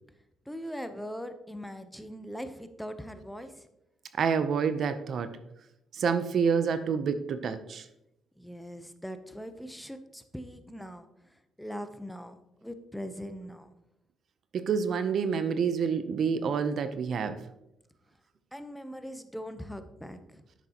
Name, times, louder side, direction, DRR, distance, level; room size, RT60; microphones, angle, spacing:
voice 1, 0.5-3.7 8.4-13.7 18.5-20.4, equal, ahead, 0.7 m, -41 dB
voice 2, 4.2-5.4 5.9-7.9 14.5-17.4, right 6 dB, 60° right, 0.6 m, -28 dB
10.0 x 6.6 x 2.9 m
cardioid pair, 90°, 0 cm